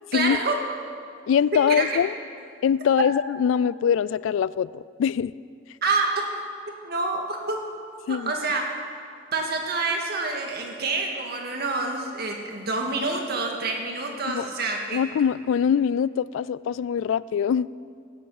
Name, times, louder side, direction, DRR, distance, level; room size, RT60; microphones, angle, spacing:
voice 1, 0.1-0.6 1.7-2.0 5.8-6.1 6.8-7.6 8.1-8.6 9.3-15.0, right 3 dB, 55° right, 1 dB, 1.9 m, -27 dB
voice 2, 1.3-2.1 2.6-5.3 8.1-8.3 14.3-14.4 14.9-17.7, left 7 dB, 85° left, 20 dB, 0.3 m, -23 dB
15.5 x 11.5 x 4.8 m, 2.2 s
head